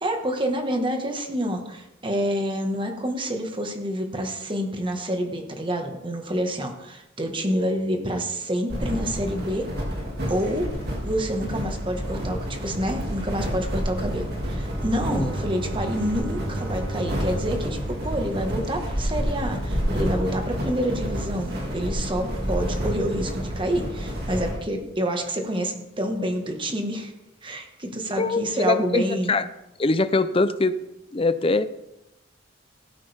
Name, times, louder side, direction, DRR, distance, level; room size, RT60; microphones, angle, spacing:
voice 1, 0.0-9.7 10.3-10.7 11.0-27.1 27.4-29.3, equal, 25° right, 4 dB, 1.6 m, -28 dB
sound 1, 8.7-24.6, equal, 55° right, 2.4 m, -29 dB
Bowed string instrument, 14.1-19.4, right 2 dB, 85° right, 1.7 m, -36 dB
voice 2, 28.2-29.4 29.8-30.7 31.1-31.6, left 3 dB, 30° left, 12 dB, 0.5 m, -22 dB
17.0 x 9.0 x 3.5 m, 0.91 s
head